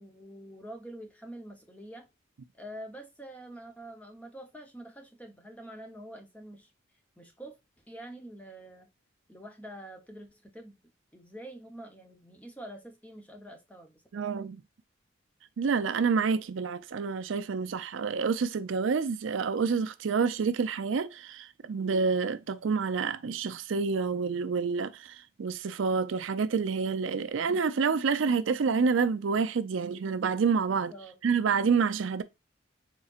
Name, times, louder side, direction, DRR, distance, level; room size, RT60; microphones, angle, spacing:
voice 1, 0.0-2.1 2.5-6.7 7.2-7.6 7.9-8.9 9.3-10.7 11.1-14.3 30.6-31.2, right 1 dB, 10° left, 0.8 m, -46 dB
voice 2, 14.1-14.6 15.6-30.9 31.2-32.2, right 5 dB, 85° right, 0.4 m, -28 dB
4.2 x 3.7 x 2.4 m
head